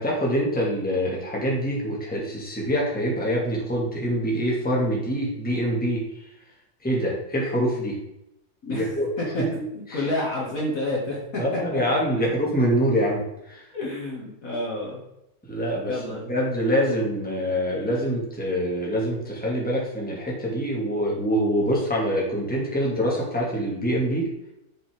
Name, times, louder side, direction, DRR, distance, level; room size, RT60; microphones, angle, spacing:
voice 1, 0.0-6.0 6.8-8.0 8.7-9.1 9.4-9.5 9.9-10.1 11.4-13.6 15.5-24.3, equal, 5° left, -3 dB, 2.1 m, -25 dB
voice 2, 8.6-11.4 11.7-12.0 13.7-15.0 15.8-16.2, left 1 dB, 45° left, -3 dB, 2.2 m, -29 dB
7.2 x 7.2 x 3.5 m, 0.86 s
omnidirectional pair, 2.1 m